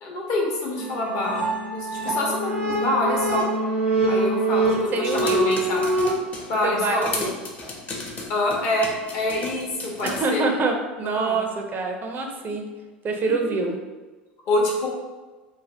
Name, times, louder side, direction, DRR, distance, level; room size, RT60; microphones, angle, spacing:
voice 1, 0.0-3.5 4.1-5.8 6.5-7.1 8.3-10.4 11.0-11.4 14.5-14.9, left 1 dB, 55° left, -1 dB, 0.8 m, -26 dB
sound 1, 0.8-6.1, right 1 dB, 80° left, 1.0 m, -24 dB
voice 2, 4.9-5.5 6.6-7.3 10.0-12.7 13.0-13.8, right 3 dB, 35° right, 3 dB, 0.4 m, -26 dB
sound 2, 5.1-6.5 7.0-10.2, left 3 dB, 30° left, 0.6 m, -34 dB
2.6 x 2.1 x 3.2 m, 1.3 s
hypercardioid pair, 75°, 5 cm